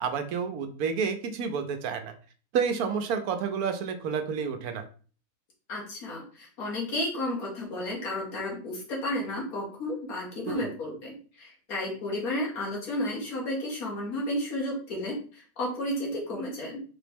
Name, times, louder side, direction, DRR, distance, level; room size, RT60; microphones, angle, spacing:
voice 1, 0.0-2.1 2.5-4.9 10.5-10.7, right 6 dB, 75° right, 7 dB, 1.1 m, -30 dB
voice 2, 5.7-16.8, left 1 dB, 70° left, -3 dB, 1.8 m, -32 dB
4.0 x 3.0 x 3.4 m, 0.40 s
omnidirectional pair, 1.6 m